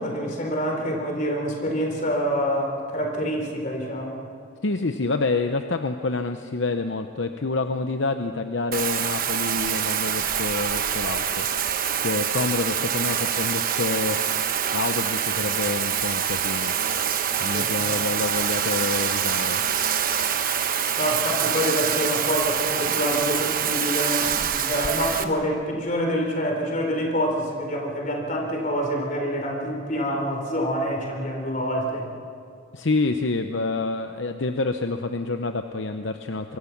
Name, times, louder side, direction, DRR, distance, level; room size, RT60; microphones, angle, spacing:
voice 1, 0.0-4.3 12.3-12.4 17.5-18.0 21.0-32.1, equal, 40° left, 2 dB, 4.0 m, -26 dB
voice 2, 4.6-14.2 14.7-16.8 17.4-19.6 32.7-36.6, left 3 dB, 65° left, 7 dB, 0.8 m, -27 dB
Bathtub (filling or washing), 8.7-25.2, right 8 dB, 45° right, 1.0 m, -25 dB
25.0 x 23.0 x 6.0 m, 2.2 s
head